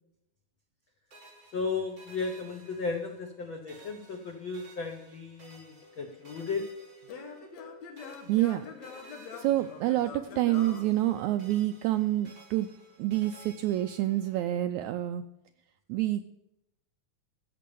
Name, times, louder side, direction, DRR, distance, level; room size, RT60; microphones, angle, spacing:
sound 1, 1.1-3.4 3.7-7.7 8.0-10.3 10.5-14.4, right 2 dB, 30° right, 7.3 m, -55 dB
voice 1, 1.5-6.7, left 4 dB, 80° left, 4 dB, 1.1 m, -35 dB
Singing / Plucked string instrument, 5.8-11.7, left 4 dB, 60° left, 2.5 m, -45 dB
voice 2, 8.3-8.7 9.4-12.7 13.0-15.2 15.9-16.3, right 14 dB, 85° right, 9 dB, 1.7 m, -28 dB
16.0 x 6.9 x 6.9 m, 0.86 s
omnidirectional pair, 3.8 m